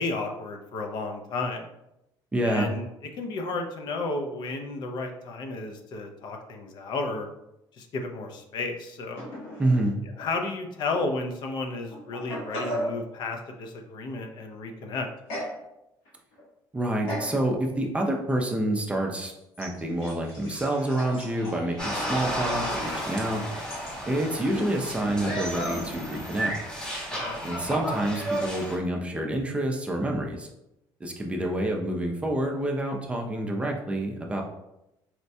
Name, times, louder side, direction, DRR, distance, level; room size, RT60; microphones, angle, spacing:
voice 1, 0.0-1.7 2.4-2.8 3.2-7.3 7.8-9.3 10.2-15.1 27.1-27.4, left 3 dB, 55° left, 3 dB, 0.5 m, -32 dB
voice 2, 2.3-2.7 9.6-10.0 16.7-19.3 19.6-23.4 24.1-26.6 27.4-30.5 31.0-34.4, right 1 dB, 15° right, 1 dB, 0.4 m, -28 dB
sound 1, 9.1-9.9 10.2-10.3 11.2-11.3 11.9-13.0 15.3-15.6 16.0-16.4 17.1-17.4 18.0-18.1 19.5-24.0, equal, 85° left, 1.2 m, -37 dB
sound 2, 21.8-28.8, equal, 10° left, 0.9 m, -32 dB
4.2 x 2.2 x 2.6 m, 0.87 s
cardioid pair, 125°, 9 cm